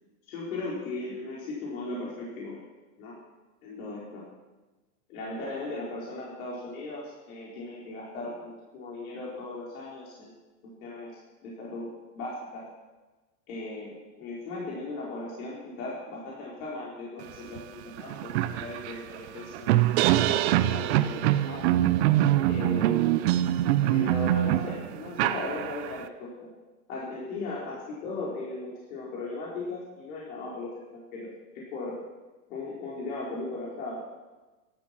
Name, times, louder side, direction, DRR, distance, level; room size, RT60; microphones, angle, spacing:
voice 1, 0.3-2.6 3.0-3.1 3.6-4.3 5.1-10.3 10.6-11.1 11.4-12.6 13.5-19.7 20.2-21.6 22.5-23.4 23.9-26.5 26.9-32.0 32.5-34.1, left 2 dB, 60° left, -5 dB, 4.5 m, -37 dB
sound 1, 17.6-17.7 18.0-26.0, right 13 dB, 45° right, 0.7 m, -24 dB
14.5 x 12.5 x 6.0 m, 1.2 s
supercardioid pair, 155°, 48 cm